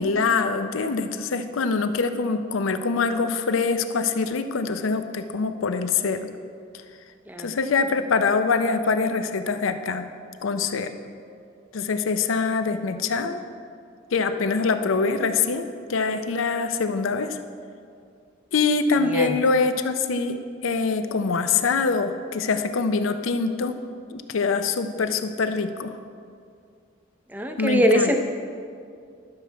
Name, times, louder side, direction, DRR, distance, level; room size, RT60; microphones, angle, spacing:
voice 1, 0.0-6.3 7.4-10.1 10.4-10.9 11.7-13.4 14.1-17.4 18.5-20.4 20.6-23.7 24.1-25.9 27.6-28.1, left 4 dB, 80° left, 9 dB, 0.5 m, -24 dB
voice 2, 27.3-28.1, equal, 10° right, 5 dB, 0.5 m, -22 dB
11.5 x 6.9 x 4.6 m, 2.3 s
head